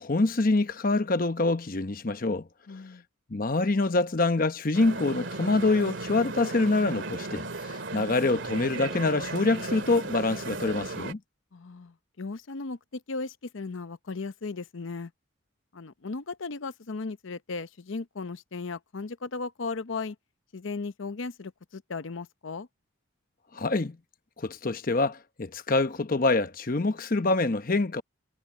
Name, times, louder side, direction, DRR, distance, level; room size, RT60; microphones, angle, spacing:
voice 1, 0.0-2.4 3.3-11.2 23.5-24.0 24.4-28.0, left 3 dB, 45° left, 0.9 m, -25 dB
voice 2, 2.7-3.0 11.5-15.1 15.7-20.2 20.5-22.7, left 4 dB, 75° left, 0.7 m, -36 dB
sound 1, 4.7-11.1, right 3 dB, 70° right, 2.2 m, -36 dB
head